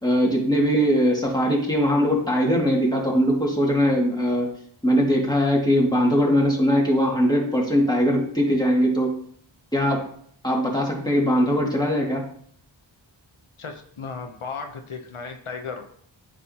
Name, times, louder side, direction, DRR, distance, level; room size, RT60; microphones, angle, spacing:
voice 1, 0.0-4.5 4.8-9.1 9.7-10.1 10.4-12.3, equal, 10° left, -2 dB, 2.2 m, -21 dB
voice 2, 13.6-15.8, left 5 dB, 85° left, 5 dB, 0.9 m, -35 dB
9.4 x 6.1 x 2.9 m, 0.62 s
wide cardioid pair, 50°, 48 cm